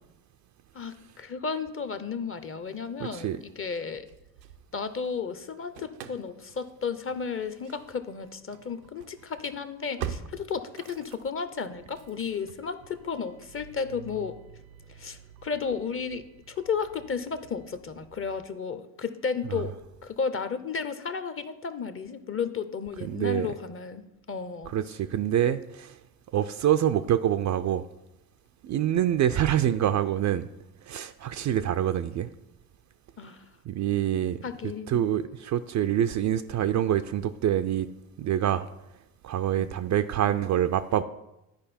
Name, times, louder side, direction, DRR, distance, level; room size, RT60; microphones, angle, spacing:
voice 1, 0.7-4.1 4.7-14.3 14.9-19.7 20.0-24.7 33.2-33.4 34.4-35.0 39.6-39.7, left 5 dB, 25° left, 0.7 m, -33 dB
voice 2, 3.0-3.4 19.5-19.6 23.0-23.5 24.7-26.0 26.3-27.8 28.6-30.5 30.8-32.3 33.7-34.4 34.9-37.9 38.2-38.7 39.2-41.0, right 10 dB, 40° right, 0.4 m, -26 dB
Engine starting / Slam, 3.7-5.1 5.4-18.5, right 9 dB, 90° right, 0.7 m, -46 dB
11.5 x 5.0 x 4.3 m
hypercardioid pair, 60°, 48 cm